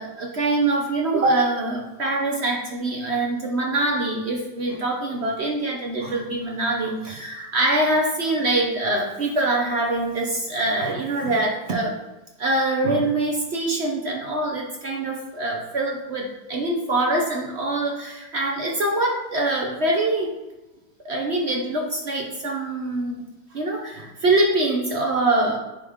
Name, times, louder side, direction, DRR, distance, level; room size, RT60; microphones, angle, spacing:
voice 1, 0.0-11.9 12.4-20.3 21.0-23.3 23.5-25.6, right 2 dB, 55° right, 0 dB, 0.7 m, -24 dB
9.7 x 3.2 x 3.6 m, 1.0 s
omnidirectional pair, 2.1 m